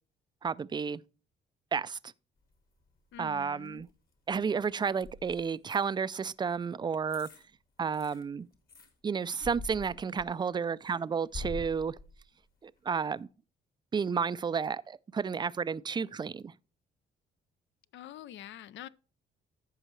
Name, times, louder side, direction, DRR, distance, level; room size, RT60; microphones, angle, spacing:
voice 1, 0.4-1.0 1.7-2.1 3.2-3.9 4.3-7.3 7.8-8.5 9.0-12.0 12.6-13.3 13.9-16.5, right 6 dB, 20° right, 0.3 m, -32 dB
sound 1, 2.4-3.3 3.6-5.9 6.6-6.7 7.1-7.4 7.8-8.9 9.4-10.5 10.9-12.5 12.9-13.0, left 2 dB, 45° left, 1.8 m, -45 dB
voice 2, 3.1-3.8 17.9-18.9, left 11 dB, 70° left, 0.5 m, -46 dB
14.0 x 5.5 x 3.2 m
cardioid pair, 90°, 20 cm